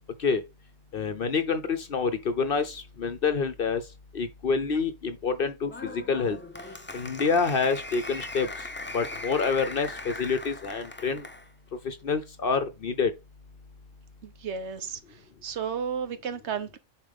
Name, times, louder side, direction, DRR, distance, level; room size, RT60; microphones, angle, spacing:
voice 1, 0.9-3.8 4.1-6.4 6.9-8.5 8.9-11.3 11.8-13.1, left 5 dB, 55° left, 0.8 m, -27 dB
Applause, 5.7-11.5, left 2 dB, 15° left, 0.5 m, -40 dB
voice 2, 14.2-16.8, right 7 dB, 65° right, 1.1 m, -33 dB
7.1 x 4.7 x 3.5 m
omnidirectional pair, 1.3 m